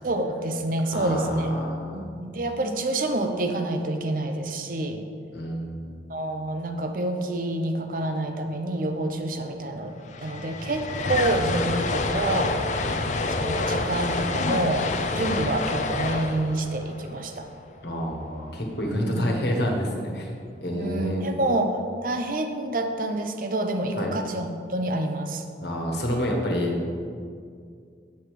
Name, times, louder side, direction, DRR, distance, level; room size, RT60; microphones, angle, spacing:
voice 1, 0.0-1.5 1.9-5.1 6.1-12.8 13.4-14.9 15.1-17.5 18.9-19.3 20.7-25.4, right 1 dB, 45° right, 5 dB, 0.7 m, -28 dB
voice 2, 0.9-2.0 5.3-5.9 12.8-13.3 17.8-20.3 20.6-21.2 24.0-24.1 25.6-26.8, equal, 65° left, 0 dB, 1.5 m, -28 dB
sound 1, 9.6-9.7 9.9-18.1, left 3 dB, 40° left, 0.5 m, -28 dB
9.3 x 6.7 x 4.9 m, 2.3 s
head